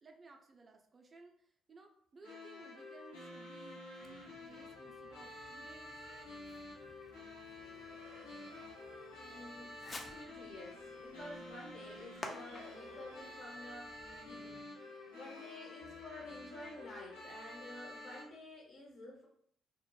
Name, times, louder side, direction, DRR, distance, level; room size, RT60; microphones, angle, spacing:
voice 1, 0.0-6.0, right 3 dB, 35° right, 3 dB, 0.4 m, -59 dB
sound 1, 2.2-18.2, left 2 dB, 70° left, 0.7 m, -50 dB
Fireworks, 4.0-14.7, left 1 dB, 30° left, 0.4 m, -55 dB
sound 2, 7.3-16.4, right 1 dB, 90° right, 0.5 m, -61 dB
voice 2, 9.2-14.5 15.1-19.3, left 1 dB, 55° left, -2 dB, 1.0 m, -51 dB
2.2 x 2.1 x 3.0 m, 0.64 s
figure-of-eight pair, 45°, 0 cm